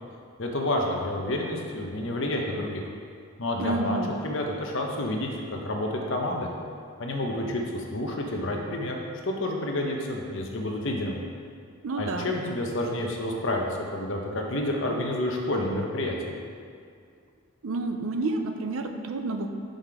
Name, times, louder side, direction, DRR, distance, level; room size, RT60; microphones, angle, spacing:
voice 1, 0.4-2.8 3.4-6.5 7.0-9.0 9.2-11.2 12.0-13.7 13.9-16.2, left 1 dB, 60° left, 0 dB, 0.9 m, -29 dB
voice 2, 3.6-4.1 11.8-12.3 17.6-19.5, right 2 dB, 70° right, 6 dB, 0.5 m, -29 dB
5.9 x 5.2 x 4.8 m, 2.2 s
head